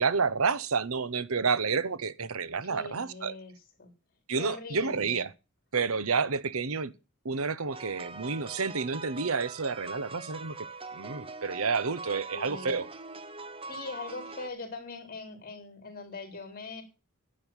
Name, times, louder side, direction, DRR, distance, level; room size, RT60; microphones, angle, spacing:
voice 1, 0.0-3.4 4.3-5.3 5.7-6.9 7.2-10.6 10.9-12.9, right 5 dB, 65° right, 0.9 m, -29 dB
voice 2, 2.7-3.5 3.8-3.9 4.4-5.2 12.3-12.8 13.7-16.8, left 3 dB, 40° left, 3.6 m, -41 dB
sound 1, 7.7-14.5, right 3 dB, 25° right, 1.0 m, -42 dB
11.0 x 8.7 x 7.2 m
head